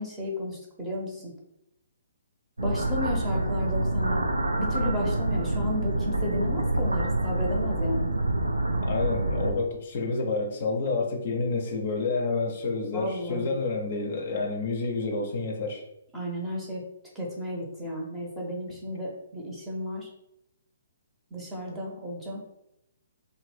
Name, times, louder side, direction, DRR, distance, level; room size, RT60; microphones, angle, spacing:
voice 1, 0.0-1.3 2.6-4.3 4.6-8.1 12.9-13.5 16.1-16.8 17.1-20.1 21.3-22.4, left 1 dB, 10° right, -3 dB, 0.7 m, -33 dB
sound 1, 2.6-9.5, right 2 dB, 80° right, 0.3 m, -27 dB
voice 2, 8.9-15.8, left 3 dB, 45° left, 2 dB, 0.5 m, -29 dB
2.6 x 2.1 x 3.2 m, 0.84 s
figure-of-eight pair, 130°, 0 cm